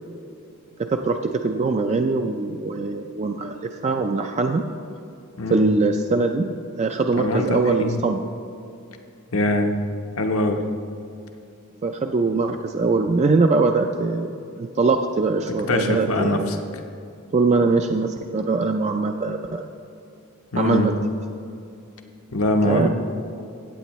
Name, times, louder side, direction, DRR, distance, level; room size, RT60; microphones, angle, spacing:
voice 1, 0.8-4.6 5.5-6.5 6.8-8.2 11.8-16.5 17.3-19.6 20.6-20.9 22.6-22.9, right 3 dB, 30° right, 5 dB, 0.4 m, -22 dB
voice 2, 5.4-5.7 7.2-8.0 9.3-9.7 10.2-10.6 15.5-16.6 20.5-20.9 22.3-22.9, left 2 dB, 75° left, 4 dB, 1.0 m, -23 dB
15.0 x 8.7 x 3.1 m, 2.6 s
head